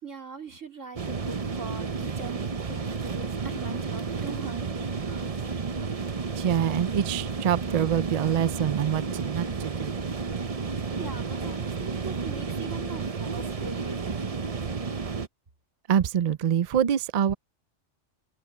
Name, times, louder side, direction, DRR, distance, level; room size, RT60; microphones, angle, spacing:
voice 1, 0.0-5.4 10.7-14.4, right 4 dB, 80° right, 3.9 m, -42 dB
sound 1, 1.0-15.3, right 5 dB, 35° right, 0.8 m, -32 dB
voice 2, 6.4-10.0 15.9-17.3, right 9 dB, 55° right, 0.4 m, -25 dB
omnidirectional pair, 1.3 m